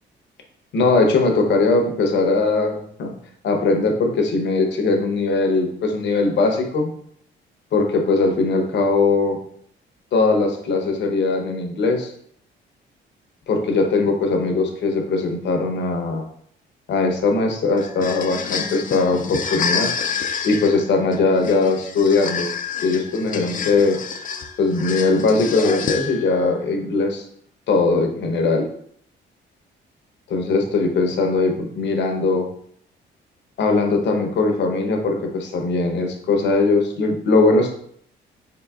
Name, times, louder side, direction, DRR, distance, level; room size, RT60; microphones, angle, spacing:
voice 1, 0.7-3.1 3.4-6.9 7.7-9.4 10.1-12.1 13.5-16.2 16.9-19.9 20.4-22.5 22.8-24.0 24.6-27.2 27.7-28.7 30.3-32.5 33.6-37.7, left 3 dB, 65° left, 3 dB, 0.8 m, -20 dB
sound 1, 17.8-26.4, left 6 dB, 40° left, 0.4 m, -28 dB
3.9 x 3.8 x 2.3 m, 0.65 s
cardioid pair, 90°, 20 cm